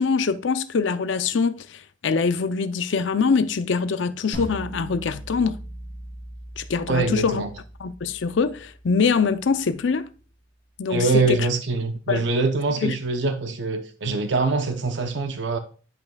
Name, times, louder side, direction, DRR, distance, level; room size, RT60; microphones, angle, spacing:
voice 1, 0.0-5.6 6.6-7.4 7.8-10.1 10.8-11.5 12.1-12.2 12.8-12.9, left 5 dB, 70° left, 0.5 m, -23 dB
sound 1, 4.3-9.4, equal, 45° right, 3.5 m, -39 dB
voice 2, 6.9-7.5 10.9-15.6, right 3 dB, 65° right, 0.7 m, -24 dB
10.5 x 5.3 x 2.3 m
head